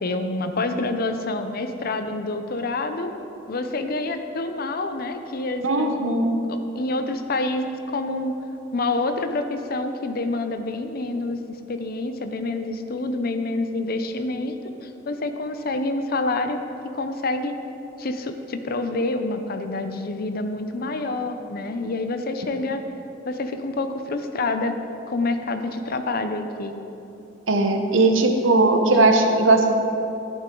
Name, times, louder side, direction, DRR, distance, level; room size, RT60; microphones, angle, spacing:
voice 1, 0.0-3.1 3.5-6.0 6.5-8.3 8.7-11.4 11.7-14.6 14.8-16.6 16.9-17.6 18.0-22.8 23.3-24.7 25.1-26.7, left 2 dB, 50° left, 7 dB, 0.6 m, -27 dB
voice 2, 5.6-6.4 27.5-29.7, right 2 dB, 85° right, 4 dB, 1.0 m, -18 dB
11.5 x 8.9 x 3.8 m, 3.0 s
head